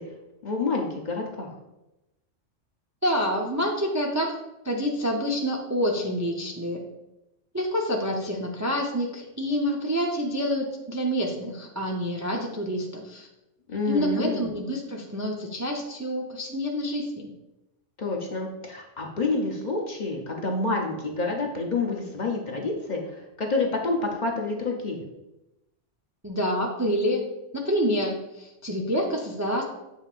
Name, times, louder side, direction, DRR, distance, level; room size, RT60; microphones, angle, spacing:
voice 1, 0.4-1.5 13.7-14.5 18.0-25.0, left 3 dB, 40° left, 0 dB, 0.8 m, -28 dB
voice 2, 3.0-4.4 4.6-6.8 7.5-13.3 13.9-17.3 26.2-27.2 27.5-29.6, equal, 20° right, -1 dB, 0.4 m, -27 dB
7.7 x 5.4 x 2.5 m, 0.94 s
omnidirectional pair, 1.3 m